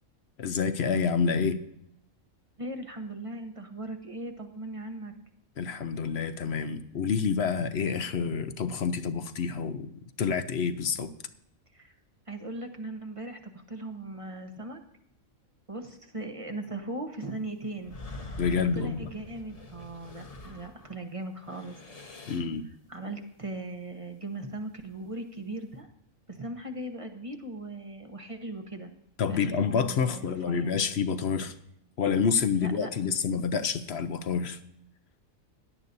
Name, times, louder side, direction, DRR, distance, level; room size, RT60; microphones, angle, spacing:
voice 1, 0.4-1.6 5.6-11.1 18.4-19.1 22.3-22.7 29.2-31.5 32.0-34.6, left 6 dB, 55° left, 0.8 m, -28 dB
voice 2, 2.6-5.1 11.7-11.9 12.3-14.8 15.7-18.0 18.5-21.7 22.9-25.9 26.3-28.9 29.3-30.8 32.5-32.9, right 2 dB, 25° right, 1.0 m, -38 dB
sound 1, 17.8-21.0 21.4-22.6, left 2 dB, 30° left, 0.9 m, -44 dB
17.0 x 11.0 x 2.7 m
omnidirectional pair, 1.5 m